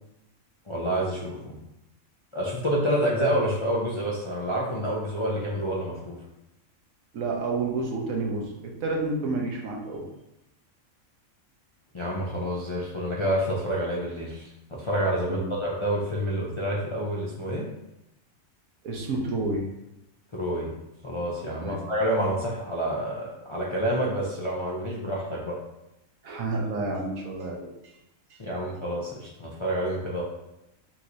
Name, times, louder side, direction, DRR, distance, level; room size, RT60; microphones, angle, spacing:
voice 1, 0.7-1.6 2.3-6.2 11.9-17.7 20.3-20.7 21.0-25.6 28.4-30.2, equal, 35° left, -5 dB, 0.5 m, -28 dB
voice 2, 7.1-10.1 15.3-15.5 18.8-19.7 21.6-21.8 26.2-27.7 28.3-28.4, right 3 dB, 75° right, 0 dB, 1.3 m, -30 dB
5.6 x 3.0 x 2.6 m, 0.89 s
omnidirectional pair, 1.5 m